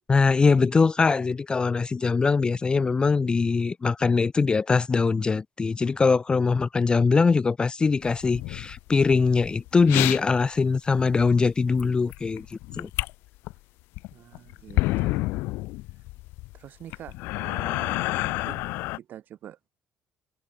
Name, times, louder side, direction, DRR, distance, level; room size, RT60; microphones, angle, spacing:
voice 1, 0.1-12.9, left 4 dB, 25° left, 0.3 m, -22 dB
sound 1, 8.0-10.2 10.6-10.7 11.0-11.3 11.7-13.1 13.4-13.5 13.9-19.0, left 21 dB, 90° left, 0.8 m, -29 dB
voice 2, 14.1-15.3 16.5-19.7, right 11 dB, 65° right, 1.8 m, -45 dB
cardioid pair, 95°, 4 cm